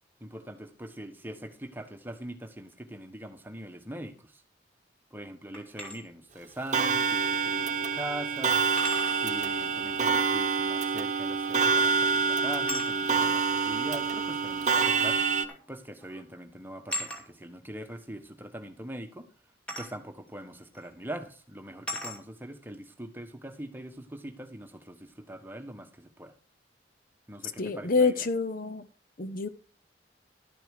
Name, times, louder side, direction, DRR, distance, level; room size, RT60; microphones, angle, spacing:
voice 1, 0.2-4.4 5.1-8.6 9.1-19.3 19.8-26.3 27.3-28.3, right 1 dB, 10° right, 6 dB, 1.2 m, -42 dB
sound 1, 5.5-6.0 7.5-7.6 8.8-9.2 11.4-11.8 12.7-12.9 14.1-14.2 15.5-15.7 16.0-16.2 16.9-17.2 19.7-19.9 20.7-20.9 21.9-22.2, left 1 dB, 5° left, 2.5 m, -37 dB
Clock, 6.7-15.5, right 5 dB, 40° right, 1.0 m, -27 dB
voice 2, 27.6-28.8 29.2-29.5, left 4 dB, 50° left, 12 dB, 0.7 m, -27 dB
12.0 x 8.9 x 4.8 m, 0.39 s
head